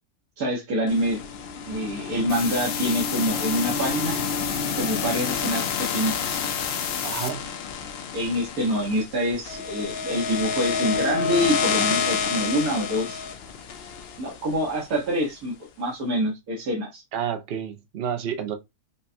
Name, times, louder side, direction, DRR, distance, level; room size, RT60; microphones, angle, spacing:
voice 1, 0.4-1.2 1.7-4.2 4.7-6.4 8.1-13.3 14.2-17.0, equal, 90° right, 1.6 m, -26 dB
sound 1, 0.9-15.1, left 6 dB, 60° left, 0.7 m, -29 dB
sound 2, 2.3-7.3, left 8 dB, 80° left, 1.1 m, -31 dB
voice 2, 7.0-7.4 17.1-18.6, right 8 dB, 55° right, 0.7 m, -30 dB
5.4 x 2.2 x 2.6 m
omnidirectional pair, 1.5 m